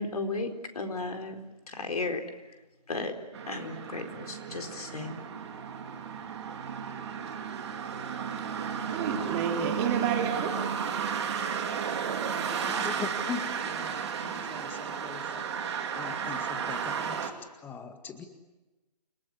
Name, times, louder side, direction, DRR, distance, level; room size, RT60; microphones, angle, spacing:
voice 1, 0.0-2.2 2.9-3.1 3.5-5.2, left 3 dB, 65° left, 6 dB, 4.2 m, -34 dB
sound 1, 3.3-17.3, right 7 dB, 40° right, 3.0 m, -33 dB
voice 2, 8.4-10.8, right 7 dB, 20° right, 3 dB, 2.7 m, -31 dB
voice 3, 12.6-15.4 15.9-17.3 17.6-18.3, left 5 dB, 10° left, 8 dB, 1.9 m, -41 dB
29.0 x 19.0 x 9.9 m, 1.1 s
figure-of-eight pair, 145°, 21 cm